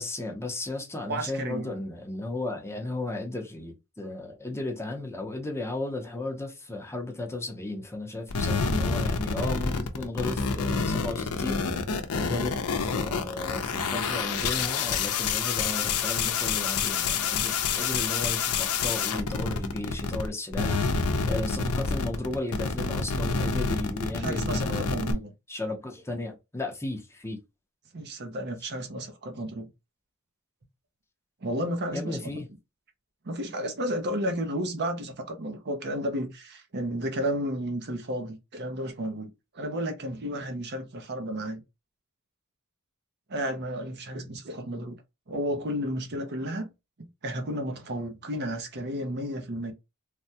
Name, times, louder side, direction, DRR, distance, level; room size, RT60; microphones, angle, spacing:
voice 1, 0.0-11.6 12.1-12.5 12.8-20.9 21.3-24.9 25.5-27.4 31.9-32.5, left 2 dB, 10° left, 0.7 m, -34 dB
voice 2, 1.1-1.8 24.2-25.3 27.9-29.7 31.4-32.2 33.2-39.3 39.5-41.6 43.3-45.0 45.3-46.7 47.0-49.7, equal, 50° right, 0.7 m, -32 dB
sound 1, 8.3-20.3 20.5-25.1, left 5 dB, 85° left, 0.6 m, -28 dB
3.3 x 2.2 x 2.7 m
head